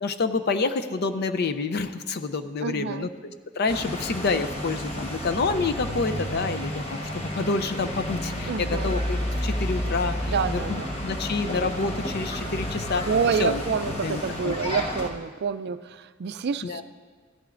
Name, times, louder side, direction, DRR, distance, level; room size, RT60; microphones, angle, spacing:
voice 1, 0.0-3.1 3.6-13.0 13.4-13.6 14.0-14.5 16.6-16.8, left 4 dB, 50° left, 10 dB, 0.5 m, -28 dB
voice 2, 2.6-3.1 8.5-8.9 10.3-10.9 13.1-16.8, right 6 dB, 50° right, 12 dB, 0.4 m, -28 dB
sound 1, 3.7-15.1, equal, 30° left, 1.1 m, -31 dB
16.0 x 12.0 x 2.5 m, 1.5 s
head